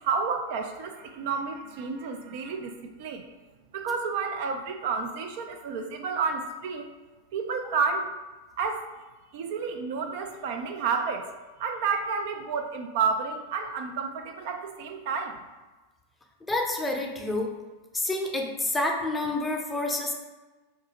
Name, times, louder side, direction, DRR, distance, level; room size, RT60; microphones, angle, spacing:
voice 1, 0.0-3.3 3.7-6.9 7.3-8.1 8.6-8.8 9.3-11.3 11.6-15.4, right 5 dB, 50° right, 5 dB, 0.4 m, -30 dB
voice 2, 16.5-17.5 17.9-20.1, left 2 dB, 10° left, 1 dB, 0.6 m, -28 dB
3.5 x 2.7 x 4.0 m, 1.2 s
figure-of-eight pair, 90°, 0 cm